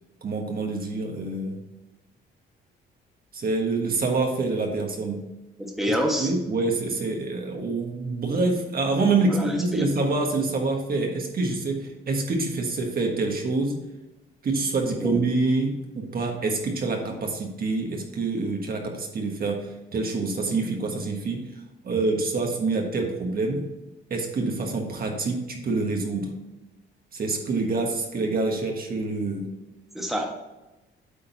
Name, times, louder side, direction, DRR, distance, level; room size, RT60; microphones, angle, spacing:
voice 1, 0.2-1.6 3.3-5.2 6.2-13.8 14.4-21.5 21.8-23.7 24.1-26.3 27.1-29.5, right 3 dB, 50° right, 2 dB, 1.4 m, -26 dB
voice 2, 5.6-6.3 9.3-9.8 15.0-15.1 29.9-30.3, equal, ahead, 0 dB, 1.5 m, -27 dB
8.4 x 3.8 x 6.0 m, 1.0 s
cardioid pair, 90°, 20 cm